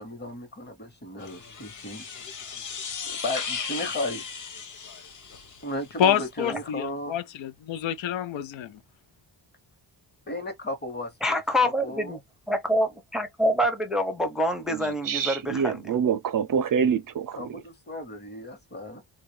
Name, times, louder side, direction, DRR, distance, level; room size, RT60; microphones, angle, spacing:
voice 1, 0.0-2.1 3.0-4.2 5.6-7.1 10.3-12.1 17.4-19.0, left 1 dB, 20° left, 1.1 m, -35 dB
sound 1, 1.2-5.9, left 6 dB, 45° left, 0.8 m, -36 dB
voice 2, 6.0-8.8, left 9 dB, 85° left, 0.6 m, -27 dB
voice 3, 11.2-12.2 12.5-15.7, equal, ahead, 0.5 m, -26 dB
voice 4, 14.7-17.6, right 7 dB, 50° right, 0.5 m, -26 dB
3.6 x 2.4 x 3.1 m
wide cardioid pair, 170°, 45 cm